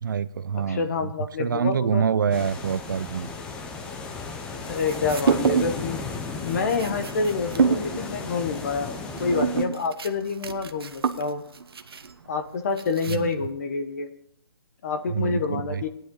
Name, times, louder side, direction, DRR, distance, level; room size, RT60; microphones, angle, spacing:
voice 1, 0.0-1.1 1.4-3.3 13.1-13.3 15.1-15.8, right 7 dB, 50° right, 0.5 m, -26 dB
voice 2, 0.5-2.1 4.7-8.9 9.2-11.4 12.3-14.1 14.8-15.9, left 4 dB, 40° left, 1.1 m, -28 dB
sound 1, 2.3-9.7, left 4 dB, 5° left, 0.5 m, -35 dB
sound 2, 4.7-5.9 6.2-13.5, right 5 dB, 65° right, 1.1 m, -28 dB
16.5 x 10.5 x 3.8 m
hypercardioid pair, 165°, 13 cm